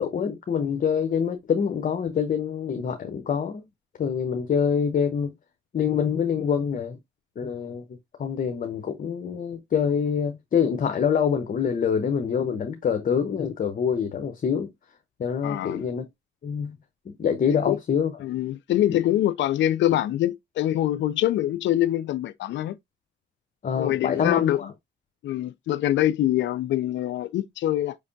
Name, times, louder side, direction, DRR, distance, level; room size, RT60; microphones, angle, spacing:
voice 1, 0.0-3.6 4.0-5.3 5.7-7.0 7.4-7.8 8.2-14.7 15.2-16.1 16.4-16.8 17.1-18.1 18.9-19.0 23.6-24.7, left 7 dB, 45° left, 0.7 m, -25 dB
voice 2, 15.4-15.8 17.7-17.8 18.2-22.8 23.8-24.7 25.2-28.0, left 13 dB, 70° left, 0.4 m, -24 dB
5.1 x 3.3 x 2.6 m
cardioid pair, 90°, 20 cm